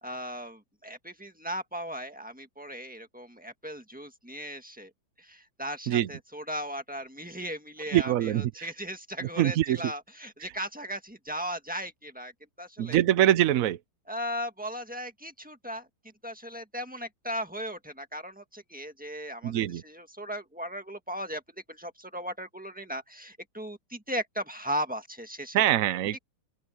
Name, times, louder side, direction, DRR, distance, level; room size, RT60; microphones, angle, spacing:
voice 1, 0.0-4.9 5.2-12.3 12.6-13.0 14.1-15.9 16.2-25.6 26.1-26.2, equal, 5° right, 1.3 m, -37 dB
voice 2, 7.9-8.7 9.4-9.9 12.8-13.8 19.4-19.8 25.5-26.2, right 12 dB, 85° right, 0.7 m, -24 dB
open air
omnidirectional pair, 2.2 m